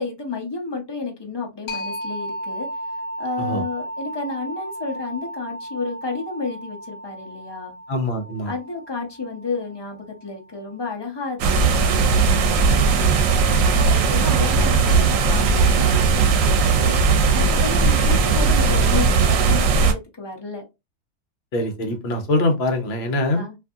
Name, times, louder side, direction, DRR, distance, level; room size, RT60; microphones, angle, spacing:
voice 1, 0.0-2.7 3.2-7.7 8.4-13.3 13.7-20.6 23.3-23.6, left 4 dB, 30° left, 0.5 m, -31 dB
sound 1, 1.7-11.1, equal, 85° left, 1.0 m, -35 dB
voice 2, 7.9-8.5 21.5-23.4, left 1 dB, 60° left, 1.0 m, -23 dB
sound 2, 11.4-19.9, right 4 dB, 80° right, 0.9 m, -18 dB
2.6 x 2.6 x 2.3 m
omnidirectional pair, 1.3 m